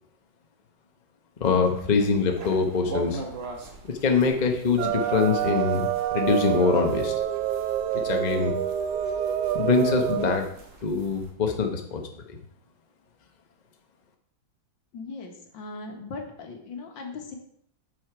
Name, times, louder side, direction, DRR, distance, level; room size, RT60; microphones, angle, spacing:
voice 1, 1.4-3.2 3.8-7.1 7.9-8.5 9.5-10.5 10.8-12.4, left 4 dB, 35° left, 3 dB, 0.7 m, -24 dB
sound 1, 1.4-11.3, right 2 dB, 35° right, 1.4 m, -43 dB
sound 2, 4.8-10.4, right 11 dB, 75° right, 1.0 m, -27 dB
voice 2, 14.9-17.4, left 3 dB, 65° left, 3 dB, 2.0 m, -38 dB
7.7 x 6.3 x 5.0 m, 0.70 s
omnidirectional pair, 2.2 m